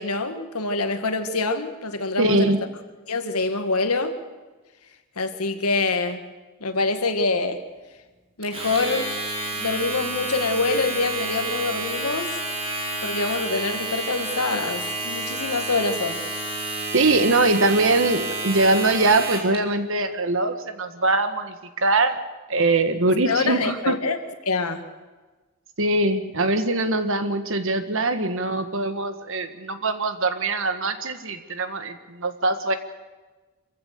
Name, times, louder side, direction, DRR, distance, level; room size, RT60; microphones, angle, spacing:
voice 1, 0.0-2.5 3.1-4.1 5.2-6.2 6.6-7.6 8.4-9.1 9.5-12.4 13.0-16.2 23.3-24.2 24.5-24.8, left 3 dB, 85° left, 8 dB, 1.8 m, -25 dB
voice 2, 2.2-2.6 16.9-22.2 22.5-23.9 25.8-32.7, right 2 dB, 60° right, 9 dB, 1.6 m, -22 dB
Domestic sounds home sounds, 8.4-19.6, right 2 dB, 25° right, 4.0 m, -30 dB
26.5 x 15.5 x 6.7 m, 1.3 s
head